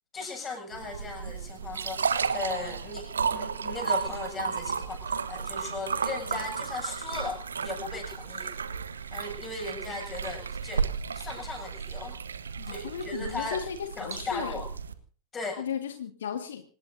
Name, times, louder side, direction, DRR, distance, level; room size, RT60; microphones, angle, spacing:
voice 1, 0.1-8.5 9.1-12.2 12.7-13.6 14.0-14.7 15.3-15.6, left 3 dB, 20° left, 3 dB, 7.4 m, -37 dB
sound 1, 0.7-14.9, right 6 dB, 70° right, 1.4 m, -33 dB
voice 2, 12.6-14.6 15.6-16.6, left 8 dB, 65° left, 7 dB, 1.8 m, -35 dB
26.0 x 20.0 x 2.7 m, 0.41 s
figure-of-eight pair, 90°, 0 cm